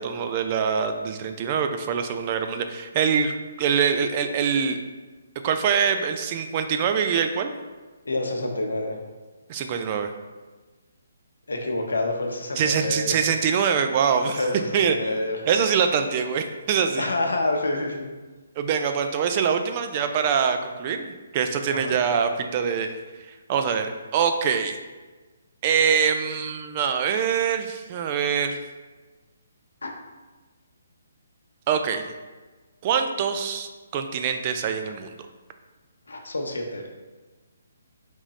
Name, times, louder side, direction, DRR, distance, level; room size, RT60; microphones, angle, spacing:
voice 1, 0.0-3.3 3.6-4.8 5.4-7.5 9.5-10.1 12.6-14.4 14.7-15.0 15.5-17.1 18.6-22.9 23.5-24.8 25.6-28.6 31.7-32.1 32.8-35.1, right 7 dB, 35° right, 6 dB, 0.4 m, -24 dB
voice 2, 8.0-9.0 11.5-13.1 14.3-15.4 17.0-18.1 21.7-21.9 29.8-29.9 36.1-36.9, left 2 dB, 85° left, 2 dB, 0.7 m, -27 dB
3.7 x 3.0 x 4.1 m, 1.3 s
hypercardioid pair, 150°, 0 cm